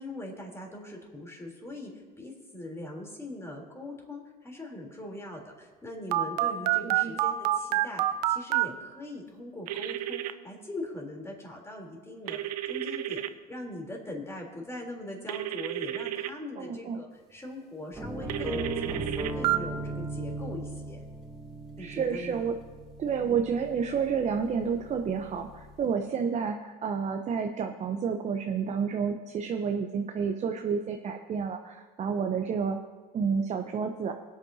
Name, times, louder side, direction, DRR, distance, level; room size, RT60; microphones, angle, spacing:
voice 1, 0.0-13.2 13.5-21.0 21.8-22.5 23.2-23.4, left 1 dB, 15° left, 0 dB, 3.5 m, -41 dB
Telephone, 6.1-8.7 9.7-10.3 12.3-13.3 15.3-16.3 18.3-19.6, right 14 dB, 90° right, 0.6 m, -28 dB
voice 2, 6.8-7.2 16.6-17.0 21.8-22.5 23.0-32.8 33.1-34.1, right 6 dB, 35° right, 5 dB, 0.8 m, -30 dB
sound 1, 17.9-25.8, right 2 dB, ahead, 4.5 m, -38 dB
23.0 x 8.7 x 2.8 m, 1.3 s
hypercardioid pair, 85°, 20 cm